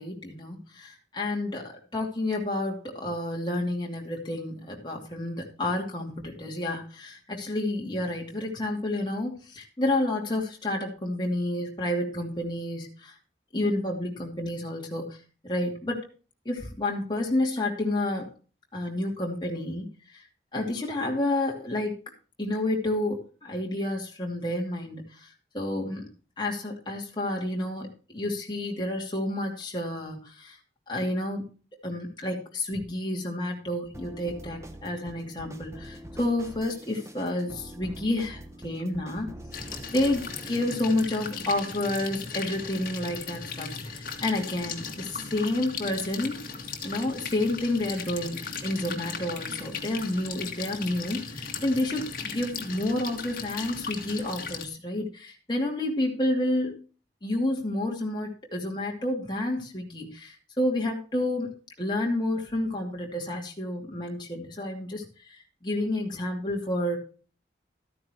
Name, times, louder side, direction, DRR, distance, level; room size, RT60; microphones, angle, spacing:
voice 1, 0.0-13.1 13.5-16.1 16.4-18.3 18.7-20.3 20.5-22.0 22.4-26.1 26.4-30.6 30.9-31.4 31.8-46.5 46.8-56.8 57.2-67.0, left 1 dB, 25° left, -1 dB, 2.6 m, -30 dB
sound 1, 33.9-41.1, right 1 dB, 15° right, 1.0 m, -44 dB
sound 2, 39.5-54.7, left 5 dB, 50° left, 2.0 m, -37 dB
13.5 x 9.7 x 3.0 m, 0.36 s
head